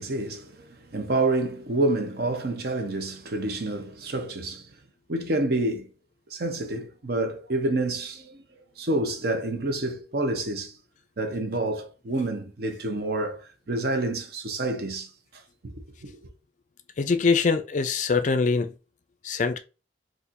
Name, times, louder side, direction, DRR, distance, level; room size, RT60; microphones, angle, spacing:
voice 1, 0.0-4.7 5.1-5.9 6.3-8.4 8.8-10.7 11.2-15.1 15.6-16.2, right 2 dB, 55° right, 0.8 m, -28 dB
voice 2, 17.0-18.7 19.2-19.6, left 4 dB, 40° left, 0.4 m, -23 dB
4.2 x 2.5 x 2.5 m
head